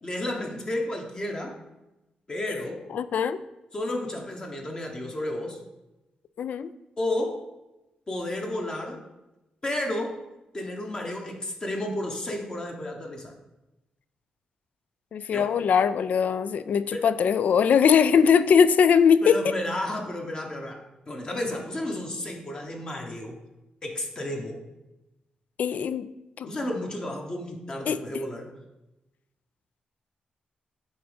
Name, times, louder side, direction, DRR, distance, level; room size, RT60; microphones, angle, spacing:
voice 1, 0.0-1.6 2.3-2.9 3.7-5.6 7.0-7.4 8.1-9.0 9.6-10.2 10.5-13.3 15.3-15.5 16.9-17.0 19.2-23.4 23.8-24.6 26.4-28.5, left 1 dB, 30° left, 2 dB, 1.0 m, -32 dB
voice 2, 2.9-3.4 6.4-6.7 15.1-19.4 25.6-26.1 26.4-26.5 27.9-28.0, left 7 dB, 65° left, 14 dB, 0.3 m, -21 dB
8.9 x 3.0 x 5.1 m, 0.98 s
wide cardioid pair, 125°, 3 cm